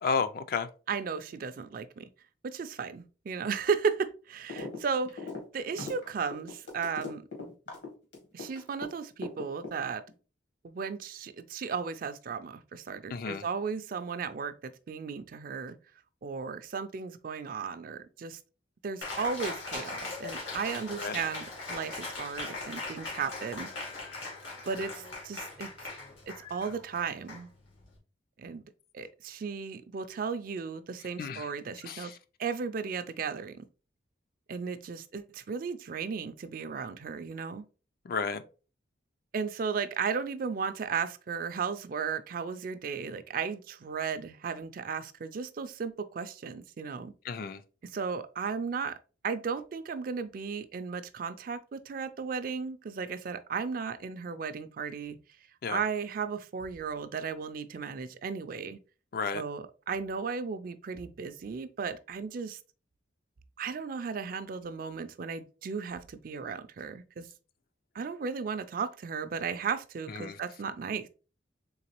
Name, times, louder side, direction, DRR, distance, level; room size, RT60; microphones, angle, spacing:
voice 1, 0.0-0.7 13.1-13.4 20.9-21.2 31.2-31.5 31.8-32.2 38.0-38.4 47.2-47.6 55.6-55.8 59.1-59.4 70.1-70.4, left 5 dB, 50° left, 0.4 m, -32 dB
voice 2, 0.9-2.1 2.4-7.2 8.3-10.0 10.6-15.8 16.2-18.4 18.8-23.7 24.7-25.7 26.3-27.5 28.4-28.6 28.9-32.1 32.4-33.7 34.5-37.6 39.3-47.1 47.9-49.0 49.2-55.2 55.7-58.8 59.3-62.6 63.6-67.3 67.9-71.1, right 5 dB, 50° right, 0.4 m, -35 dB
sound 1, 4.5-4.8 5.0-8.9 9.2-10.1, left 3 dB, 75° left, 1.8 m, -39 dB
Cheering, 19.0-28.0, left 3 dB, 90° left, 1.9 m, -40 dB
3.9 x 3.5 x 3.0 m
head